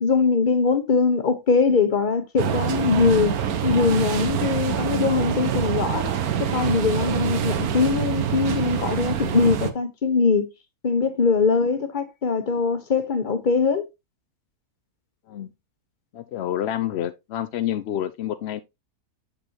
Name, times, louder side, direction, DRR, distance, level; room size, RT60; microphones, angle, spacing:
voice 1, 0.0-3.4 3.6-6.1 6.4-10.5 10.8-13.9, left 4 dB, 35° left, 1.1 m, -22 dB
sound 1, 2.4-9.7, right 8 dB, 75° right, 1.3 m, -25 dB
voice 2, 16.1-18.6, left 11 dB, 75° left, 0.6 m, -28 dB
6.8 x 6.8 x 2.8 m
omnidirectional pair, 1.6 m